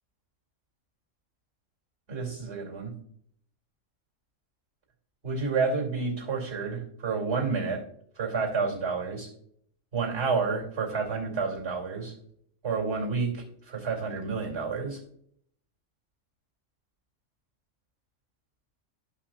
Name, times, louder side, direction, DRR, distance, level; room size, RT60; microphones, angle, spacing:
voice 1, 2.1-3.0 5.2-7.8 8.2-9.3 9.9-12.1 12.6-15.0, right 4 dB, 50° right, 0 dB, 3.2 m, -30 dB
13.5 x 5.7 x 2.6 m, 0.65 s
omnidirectional pair, 1.4 m